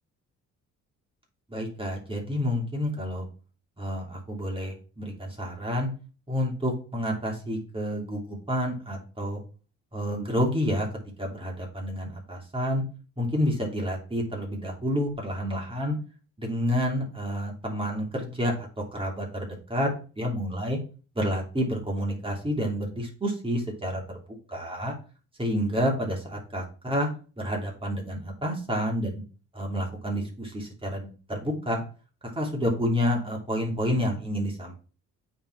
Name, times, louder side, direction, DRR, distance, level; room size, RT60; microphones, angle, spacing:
voice 1, 1.5-3.3 3.8-5.9 6.3-9.4 9.9-10.9 11.2-12.8 13.2-15.9 16.4-19.9 20.2-20.8 21.1-24.0 24.5-24.9 25.4-27.1 27.4-29.1 29.5-31.8 32.3-34.7, equal, 20° right, -1 dB, 2.9 m, -29 dB
8.5 x 4.1 x 4.5 m, 0.36 s
cardioid pair, 90°, 30 cm